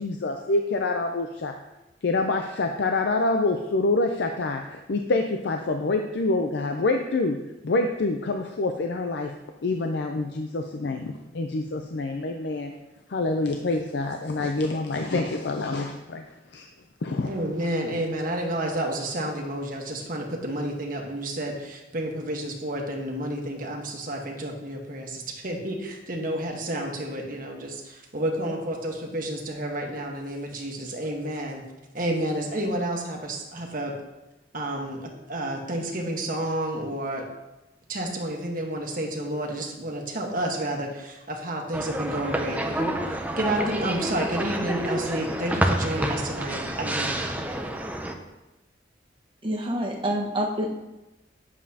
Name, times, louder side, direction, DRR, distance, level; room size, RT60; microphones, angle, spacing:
voice 1, 0.0-1.5 2.0-7.4 7.6-9.3 9.6-12.7 13.1-16.2 16.5-16.7 17.0-17.3, left 2 dB, 65° left, 4 dB, 0.5 m, -26 dB
voice 2, 17.3-31.6 31.9-33.9 34.5-37.3 37.9-47.4, right 1 dB, 50° right, 1 dB, 1.3 m, -30 dB
sound 1, 41.7-48.1, right 1 dB, 10° right, 0.5 m, -29 dB
voice 3, 49.4-50.8, equal, 25° right, 0 dB, 1.2 m, -27 dB
9.6 x 7.3 x 2.8 m, 1.0 s
head